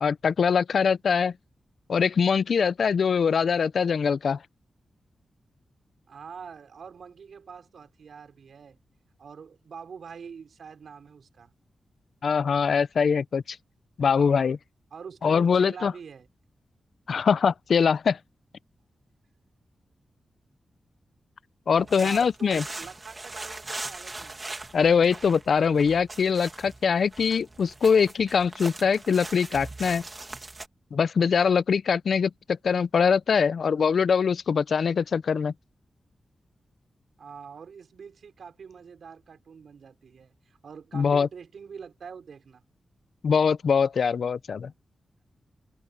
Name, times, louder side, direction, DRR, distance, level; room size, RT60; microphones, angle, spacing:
voice 1, 0.0-1.3 1.9-4.4 12.2-13.6 14.0-14.6 15.2-15.9 17.1-18.2 21.7-22.6 24.7-30.0 30.9-35.5 40.9-41.3 43.2-44.7, left 6 dB, 65° left, 0.5 m, -23 dB
voice 2, 6.1-8.8 9.2-11.5 14.9-16.3 21.8-24.6 37.2-42.6, right 6 dB, 70° right, 5.5 m, -45 dB
sound 1, 21.8-30.7, right 2 dB, 20° right, 2.4 m, -40 dB
wide cardioid pair, 180°, 0 cm